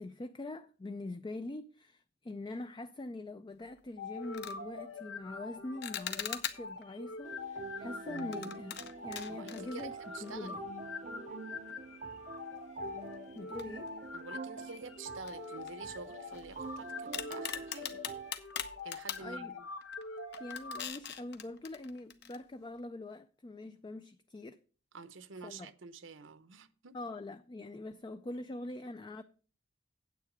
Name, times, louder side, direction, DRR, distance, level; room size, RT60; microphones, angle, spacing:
voice 1, 0.0-10.0 10.2-10.6 13.3-13.9 19.2-19.5 20.4-24.6 25.4-25.7 26.9-29.2, left 2 dB, 25° left, 0.4 m, -43 dB
sound 1, 3.6-3.8 4.2-4.6 5.8-6.8 8.1-10.5 10.8-10.9 11.7-11.8 13.6-14.3 14.6-14.7 15.2-16.7 17.1-19.3 19.8-20.0 20.3-22.4, left 9 dB, 60° left, 0.9 m, -42 dB
sound 2, 4.0-20.9, left 4 dB, 85° left, 1.5 m, -45 dB
sound 3, 7.2-18.3, right 4 dB, 40° right, 0.6 m, -46 dB
voice 2, 9.3-9.9 10.1-10.6 14.1-18.0 18.8-19.7 24.9-27.0, right 4 dB, 75° right, 0.8 m, -48 dB
9.3 x 8.1 x 5.0 m
head